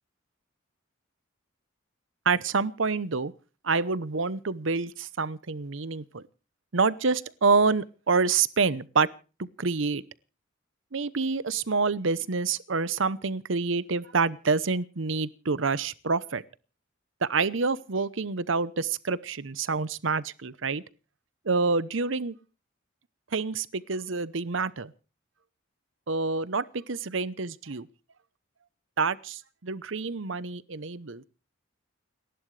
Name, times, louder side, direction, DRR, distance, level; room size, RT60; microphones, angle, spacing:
voice 1, 2.2-3.3 3.6-6.2 6.7-9.1 9.4-10.0 10.9-16.4 17.2-20.8 21.4-22.4 23.3-24.9 26.1-27.9 29.0-31.2, right 4 dB, 70° right, 0.8 m, -27 dB
30.0 x 11.5 x 3.3 m
head